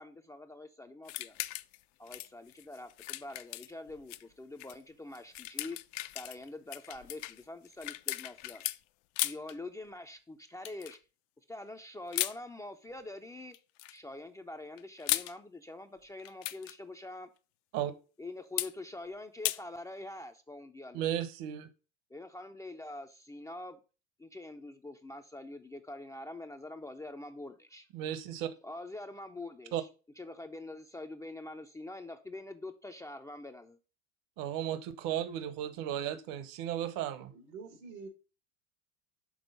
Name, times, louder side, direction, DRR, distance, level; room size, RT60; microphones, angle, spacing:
voice 1, 0.0-1.4 2.0-5.8 6.1-8.7 9.2-11.0 11.5-13.6 13.9-17.3 18.2-21.1 22.1-23.8 24.2-27.9 28.6-29.9 30.2-33.8, left 2 dB, 10° left, 5 dB, 0.3 m, -45 dB
sound 1, 1.1-1.8 2.1-4.2 4.6-4.8 5.2-8.8 9.2-9.5 10.7-11.0 12.1-12.4 13.5-14.0 14.8-15.3 16.2-16.8 18.6-18.7 19.5-19.6, left 17 dB, 70° left, 0.5 m, -36 dB
voice 2, 20.9-21.7 27.9-28.5 29.7-29.8 34.4-37.2, right 11 dB, 55° right, 13 dB, 0.9 m, -34 dB
voice 3, 37.3-38.1, right 5 dB, 90° right, 7 dB, 1.8 m, -46 dB
6.2 x 3.7 x 5.2 m, 0.33 s
supercardioid pair, 100°, 39 cm